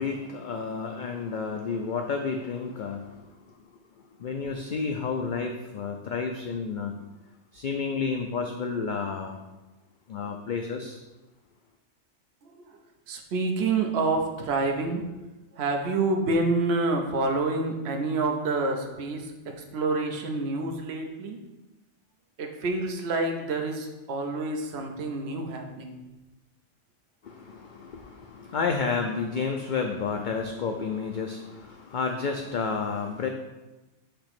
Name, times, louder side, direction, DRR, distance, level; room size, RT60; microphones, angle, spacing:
voice 1, 0.0-3.2 4.2-6.9 7.5-9.4 10.1-11.0 27.2-33.3, left 5 dB, 55° left, 3 dB, 0.5 m, -31 dB
voice 2, 12.4-12.8 13.1-15.1 15.5-21.4 22.4-26.0, right 3 dB, 65° right, 2 dB, 1.0 m, -28 dB
6.8 x 2.9 x 5.8 m, 1.1 s
omnidirectional pair, 1.2 m